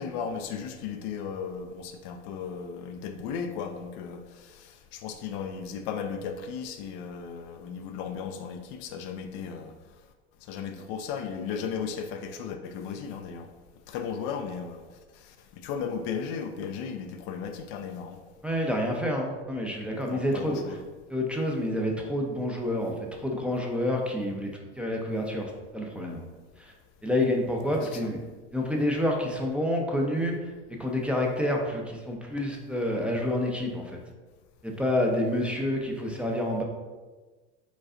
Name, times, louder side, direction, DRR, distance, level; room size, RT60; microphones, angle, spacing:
voice 1, 0.0-9.7 10.5-13.5 13.9-14.8 15.2-15.3 15.6-18.2 20.1-20.8 27.7-28.1, left 6 dB, 55° left, 6 dB, 0.5 m, -35 dB
voice 2, 18.4-20.6 21.1-26.2 26.6-26.7 27.0-28.2 28.5-30.5 30.8-34.0 34.6-36.6, left 1 dB, 5° right, -1 dB, 0.6 m, -28 dB
5.1 x 3.9 x 2.5 m, 1.3 s
hypercardioid pair, 95°, 34 cm